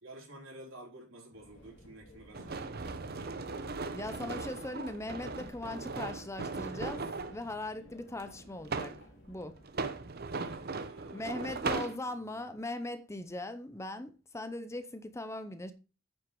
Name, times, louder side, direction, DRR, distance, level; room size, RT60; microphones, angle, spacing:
voice 1, 0.0-3.4 10.3-12.5, right 1 dB, 90° right, 4.4 m, -52 dB
sound 1, 1.3-9.6, equal, 60° left, 3.1 m, -55 dB
sound 2, 2.3-7.4 8.2-9.0 9.6-12.0, right 4 dB, 50° right, 0.8 m, -38 dB
voice 2, 3.9-9.0 9.3-9.6 11.1-15.7, left 2 dB, 15° left, 0.7 m, -40 dB
9.1 x 5.9 x 4.7 m
head